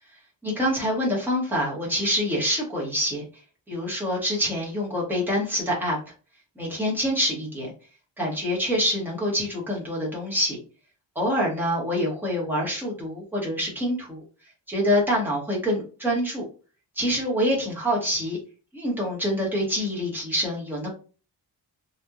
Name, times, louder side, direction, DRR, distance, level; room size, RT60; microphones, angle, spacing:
voice 1, 0.4-3.2 3.7-6.0 6.6-7.7 8.2-10.6 11.2-14.2 14.7-16.4 17.0-18.4 18.7-20.9, equal, 5° right, -5 dB, 0.8 m, -26 dB
2.8 x 2.0 x 2.3 m, 0.37 s
wide cardioid pair, 180°, 43 cm